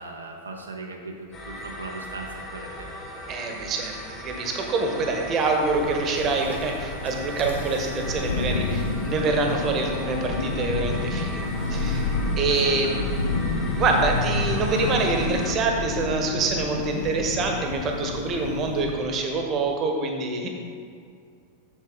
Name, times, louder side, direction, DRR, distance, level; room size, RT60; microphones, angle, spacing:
voice 1, 0.0-2.9 12.5-13.1, right 2 dB, 75° right, 1 dB, 0.8 m, -37 dB
sound 1, 1.3-15.6, left 1 dB, 25° left, 2.0 m, -38 dB
voice 2, 3.3-11.4 11.7-13.1 13.7-20.5, right 3 dB, 30° right, 2 dB, 1.2 m, -26 dB
Thunder, 5.5-19.1, left 3 dB, 70° left, 0.9 m, -29 dB
7.9 x 7.3 x 3.9 m, 2.3 s
figure-of-eight pair, 90°, 0 cm